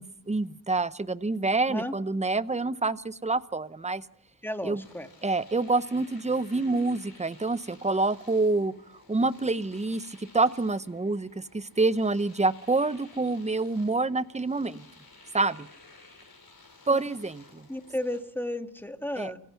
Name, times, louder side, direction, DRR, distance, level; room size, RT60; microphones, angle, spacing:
voice 1, 0.0-4.0 4.6-4.8 5.2-8.7 9.1-14.8 15.3-15.7 16.9-17.7 19.2-19.3, right 3 dB, 20° right, 16 dB, 0.7 m, -27 dB
voice 2, 4.4-5.1 16.9-17.0 17.7-19.4, left 1 dB, 5° left, 6 dB, 1.8 m, -33 dB
Domestic sounds home sounds, 4.8-18.2, left 3 dB, 70° left, 5.4 m, -55 dB
28.0 x 16.5 x 5.8 m, 0.69 s
wide cardioid pair, 50°, 37 cm